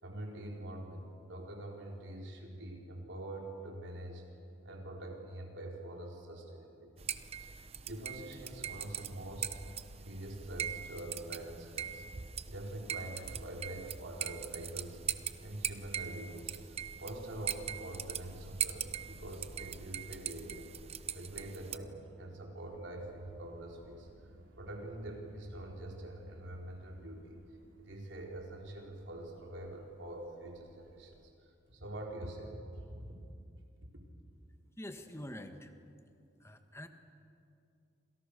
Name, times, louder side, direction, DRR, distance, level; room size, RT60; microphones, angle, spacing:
voice 1, 0.0-4.2 4.6-7.1 7.4-9.5 10.0-12.0 12.5-15.0 15.4-20.7 21.1-24.1 24.6-27.4 27.8-31.1 31.4-33.0 33.9-34.0, right 1 dB, 70° right, 0 dB, 4.7 m, -45 dB
sound 1, 7.0-21.8, right 8 dB, 30° right, 0.8 m, -41 dB
sound 2, 22.6-31.3, equal, 85° right, 2.7 m, -58 dB
voice 2, 34.7-35.7 36.4-36.9, left 1 dB, 15° left, 7 dB, 1.6 m, -45 dB
28.5 x 27.0 x 6.9 m, 2.5 s
head